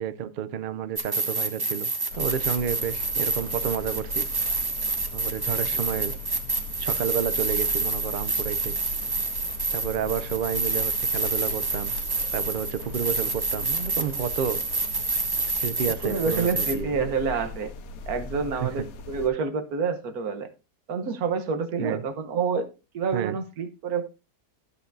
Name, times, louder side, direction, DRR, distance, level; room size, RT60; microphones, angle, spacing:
voice 1, 0.0-1.9 2.2-4.3 5.1-6.1 6.8-8.8 9.7-12.0 12.3-14.6 15.6-17.0 18.6-18.9 21.8-22.0 23.1-23.4, right 8 dB, 90° right, 0.4 m, -30 dB
sound 1, 1.0-16.7, right 3 dB, 25° right, 0.5 m, -28 dB
sound 2, 2.1-19.3, left 2 dB, 70° left, 1.1 m, -39 dB
voice 2, 16.0-17.7 18.1-20.5 20.9-22.7 22.9-24.1, right 5 dB, 70° right, 1.5 m, -28 dB
12.5 x 8.1 x 2.6 m
omnidirectional pair, 1.7 m